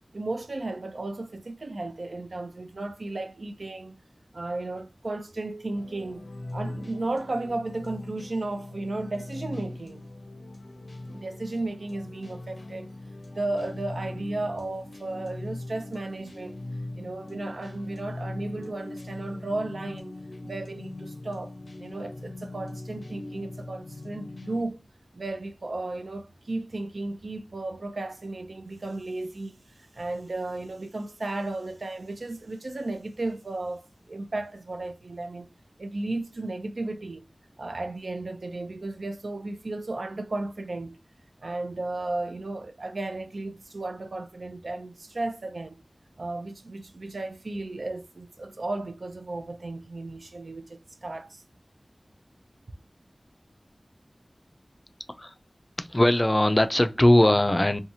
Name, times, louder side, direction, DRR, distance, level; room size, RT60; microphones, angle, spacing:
voice 1, 0.1-4.0 4.3-6.3 6.5-10.0 11.1-12.9 13.3-16.6 17.0-21.5 21.8-24.9 25.1-29.6 29.9-35.5 35.8-37.2 37.6-41.0 41.4-45.8 46.2-51.4, right 2 dB, 75° right, 0.4 m, -34 dB
sound 1, 5.7-24.6, left 2 dB, 80° left, 0.5 m, -40 dB
voice 2, 55.8-57.8, left 1 dB, 25° left, 0.3 m, -20 dB
2.8 x 2.3 x 2.6 m
wide cardioid pair, 55°, 0 cm